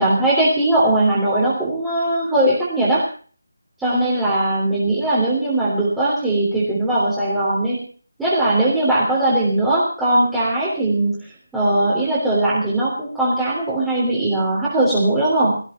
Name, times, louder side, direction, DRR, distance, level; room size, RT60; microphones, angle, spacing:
voice 1, 0.0-3.1 3.8-7.9 8.2-15.6, right 1 dB, 5° right, -9 dB, 3.4 m, -19 dB
18.0 x 15.0 x 4.4 m, 0.41 s
figure-of-eight pair, 175°, 0 cm